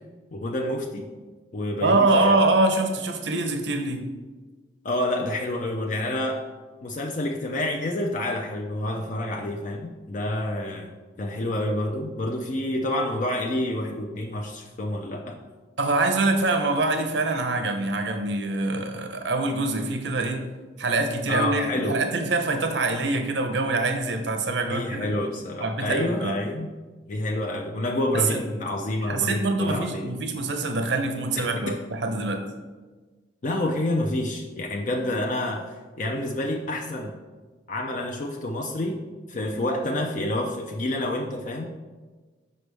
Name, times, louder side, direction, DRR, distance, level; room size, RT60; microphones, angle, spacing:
voice 1, 0.3-1.1 1.5-2.4 4.8-6.4 6.8-15.4 21.3-22.0 24.6-26.7 27.1-30.1 31.4-31.8 33.4-35.6 36.0-37.1 37.7-39.0 39.3-41.7, left 1 dB, 45° left, 1 dB, 0.4 m, -28 dB
voice 2, 1.8-4.1 15.8-20.5 20.8-25.1 25.6-26.4 28.1-28.4 29.0-32.4, right 2 dB, 75° right, 5 dB, 0.7 m, -24 dB
6.4 x 5.2 x 3.3 m, 1.3 s
head